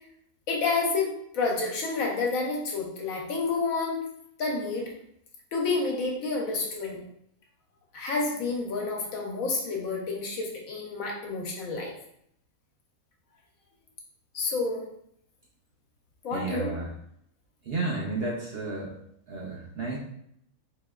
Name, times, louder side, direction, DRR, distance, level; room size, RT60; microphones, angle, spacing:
voice 1, 0.5-4.0 4.4-4.9 5.5-7.0 7.9-11.9 14.3-14.9 16.2-16.7, left 3 dB, 70° left, -1 dB, 1.2 m, -29 dB
voice 2, 16.3-16.9 17.6-18.9 19.3-20.0, right 3 dB, 55° right, -3 dB, 0.7 m, -32 dB
4.1 x 2.9 x 2.3 m, 0.71 s
omnidirectional pair, 1.5 m